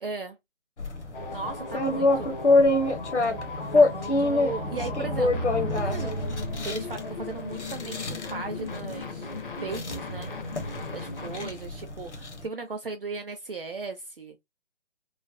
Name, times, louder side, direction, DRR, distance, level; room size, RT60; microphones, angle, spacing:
voice 1, 0.0-0.4 1.3-2.3 3.7-5.4 5.8-6.2 6.6-9.3 9.6-10.3 10.9-14.4, right 4 dB, 50° right, 0.5 m, -37 dB
sound 1, 0.8-12.5, left 2 dB, 65° left, 0.9 m, -27 dB
sound 2, 1.1-11.5, left 3 dB, 45° left, 0.6 m, -38 dB
3.1 x 2.1 x 2.4 m
figure-of-eight pair, 150°, 36 cm